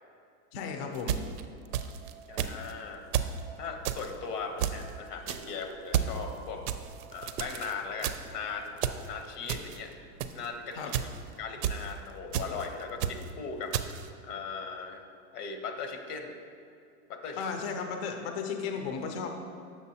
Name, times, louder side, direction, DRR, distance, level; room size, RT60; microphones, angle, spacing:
voice 1, 0.5-1.2 10.8-10.9 17.4-19.3, left 5 dB, 45° left, 4 dB, 0.5 m, -34 dB
sound 1, 0.9-2.1 2.4-2.7 3.1-3.4 3.8-4.1 4.6-4.9 5.3-5.5 5.9-6.2 6.7-7.7 8.0-8.4 8.8-9.1 9.5-9.8 10.2-10.5 10.9-11.2 11.6-11.9 12.3-12.7 13.0-13.3 13.7-14.1, right 9 dB, 85° right, 0.5 m, -31 dB
sound 2, 1.7-8.7, right 5 dB, 30° right, 0.5 m, -53 dB
voice 2, 2.3-3.0 3.6-6.6 7.1-9.9 10.3-10.9 11.4-13.7 14.2-15.0 15.3-16.4 17.1-17.4, left 5 dB, 85° left, 5 dB, 1.0 m, -38 dB
7.0 x 6.2 x 2.8 m, 2.4 s
supercardioid pair, 155°, 45 cm